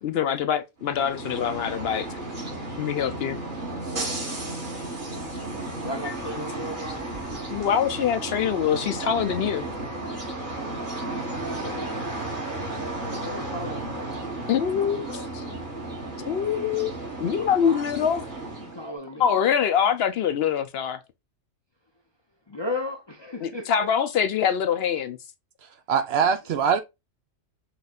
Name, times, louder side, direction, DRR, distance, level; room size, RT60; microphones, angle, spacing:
voice 1, 0.0-2.1 2.8-3.4 6.4-6.5 7.5-9.7 14.5-15.0 15.3-15.4 16.3-16.9 17.2-18.2 19.2-21.0 23.4-25.2, left 8 dB, 65° left, 0.7 m, -24 dB
sound 1, 0.8-18.9, right 2 dB, 45° right, 1.9 m, -34 dB
voice 2, 5.8-7.2 11.4-12.2 12.7-14.3 14.7-15.3 17.4-18.2 18.6-19.4 22.5-23.7 26.5-26.6, left 2 dB, 35° left, 0.5 m, -36 dB
voice 3, 25.6-26.8, right 7 dB, 65° right, 0.8 m, -23 dB
5.8 x 3.1 x 2.3 m
omnidirectional pair, 1.2 m